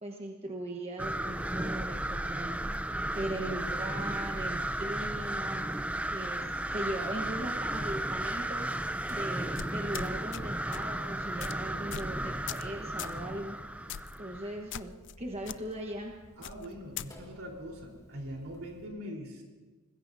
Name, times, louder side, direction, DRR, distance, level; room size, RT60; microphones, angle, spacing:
voice 1, 0.0-5.7 6.1-8.7 9.1-13.5 14.2-16.1, right 1 dB, 30° right, 1 dB, 1.1 m, -39 dB
sound 1, 1.0-14.6, right 1 dB, 5° right, 0.5 m, -34 dB
Sink (filling or washing), 8.9-18.9, left 1 dB, 15° left, 3.8 m, -56 dB
sound 2, 9.5-10.4 10.7-10.9 11.4-11.5 11.9-12.1 12.5-12.7 13.0-13.2 13.9-14.2 14.7-15.1 15.4-15.6 16.4-17.1, left 10 dB, 55° left, 0.4 m, -40 dB
voice 2, 16.4-19.4, equal, 65° right, 0 dB, 3.8 m, -42 dB
25.0 x 20.5 x 2.7 m, 1.3 s
head